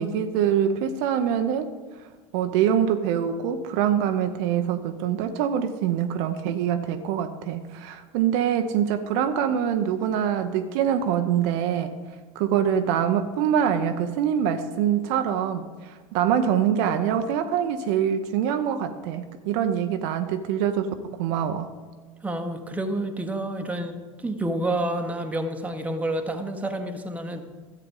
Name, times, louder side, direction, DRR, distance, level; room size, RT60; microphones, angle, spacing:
voice 1, 0.0-1.7 2.3-12.0 12.4-21.7, right 9 dB, 60° right, 7 dB, 0.7 m, -24 dB
voice 2, 22.2-27.5, right 1 dB, 10° right, 5 dB, 1.1 m, -29 dB
13.0 x 7.8 x 3.8 m, 1.4 s
hypercardioid pair, 85°, 17 cm